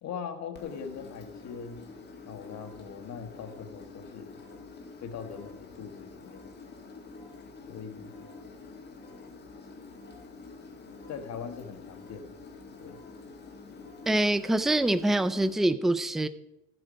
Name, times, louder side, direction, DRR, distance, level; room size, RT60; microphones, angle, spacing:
voice 1, 0.0-1.9 2.3-4.4 5.0-6.5 7.7-8.3 11.1-12.4 12.8-13.0, left 6 dB, 60° left, 6 dB, 1.4 m, -41 dB
Engine, 0.6-15.5, left 4 dB, 35° left, 2.0 m, -47 dB
voice 2, 14.1-16.3, right 1 dB, ahead, 13 dB, 0.3 m, -25 dB
13.5 x 7.8 x 5.1 m, 0.89 s
cardioid pair, 135°, 30 cm